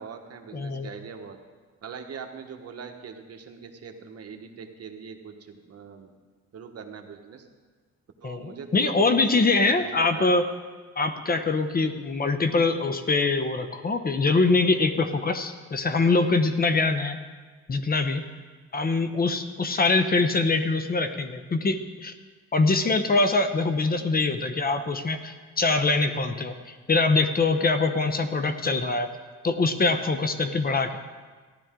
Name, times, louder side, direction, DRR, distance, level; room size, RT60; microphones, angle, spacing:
voice 1, 0.0-1.4 1.8-6.1 6.5-7.5 8.2-10.3, right 6 dB, 55° right, 4 dB, 1.3 m, -41 dB
voice 2, 0.5-0.9 8.2-10.4 11.0-17.2 17.7-18.2 18.7-22.1 22.5-29.1 29.4-31.0, left 3 dB, 30° left, 8 dB, 0.8 m, -23 dB
15.0 x 11.5 x 3.8 m, 1.4 s
cardioid pair, 90°, 30 cm